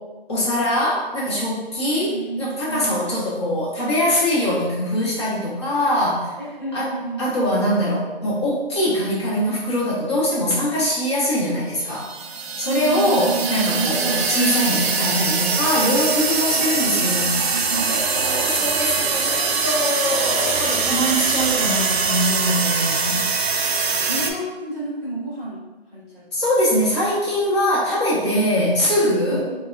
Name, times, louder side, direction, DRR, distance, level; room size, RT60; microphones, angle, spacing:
voice 1, 0.3-6.3 6.7-6.9 7.2-12.1 12.6-23.3 26.3-29.5, equal, 25° left, -7 dB, 0.8 m, -22 dB
voice 2, 1.9-3.0 6.4-7.2 12.6-14.2 16.5-17.9 23.8-25.6 25.9-26.5 29.3-29.6, right 2 dB, ahead, -29 dB, 0.5 m, -31 dB
sound 1, 11.9-24.3, right 5 dB, 75° right, 0.5 m, -23 dB
4.2 x 2.1 x 2.4 m, 1.2 s
hypercardioid pair, 160°, 31 cm